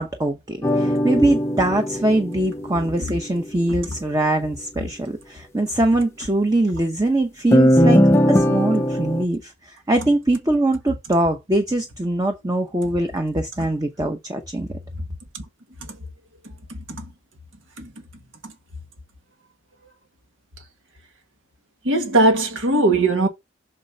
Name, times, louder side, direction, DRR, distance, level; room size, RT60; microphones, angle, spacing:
voice 1, 0.0-14.7, right 1 dB, 20° right, 0.8 m, -22 dB
sound 1, 0.6-3.2 7.5-9.2, equal, 15° left, 0.5 m, -19 dB
voice 2, 21.8-23.3, right 2 dB, 70° right, 1.7 m, -19 dB
7.3 x 6.5 x 2.8 m
head